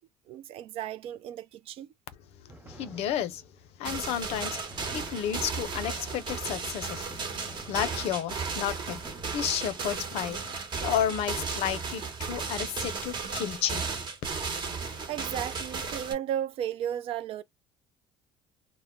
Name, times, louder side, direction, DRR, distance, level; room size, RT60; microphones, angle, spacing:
voice 1, 0.3-1.9 15.1-17.4, right 10 dB, 60° right, 0.3 m, -34 dB
sound 1, 2.5-3.7 4.3-5.7 7.1-8.5 9.0-9.3, right 1 dB, 15° right, 0.7 m, -49 dB
voice 2, 2.7-3.4 3.8-4.6 4.9-7.1 7.7-9.0 9.3-10.4 10.8-13.9, left 10 dB, 65° left, 0.5 m, -31 dB
sound 2, 3.8-16.1, right 5 dB, 45° right, 1.0 m, -35 dB
2.1 x 2.0 x 3.5 m
supercardioid pair, 75°, 11 cm